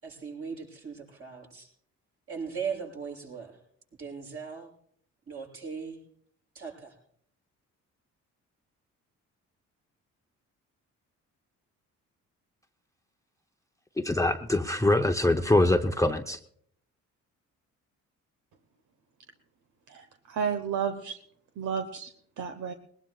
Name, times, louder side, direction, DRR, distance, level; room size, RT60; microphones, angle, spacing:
voice 1, 0.0-1.7 2.3-3.6 4.0-4.7 5.3-6.0 6.5-7.0, right 6 dB, 50° right, 7.2 m, -38 dB
voice 2, 14.0-16.4, left 2 dB, 10° left, 0.7 m, -24 dB
voice 3, 19.9-21.2 21.6-22.7, right 7 dB, 75° right, 1.1 m, -32 dB
21.0 x 20.0 x 2.4 m
cardioid pair, 90°, 30 cm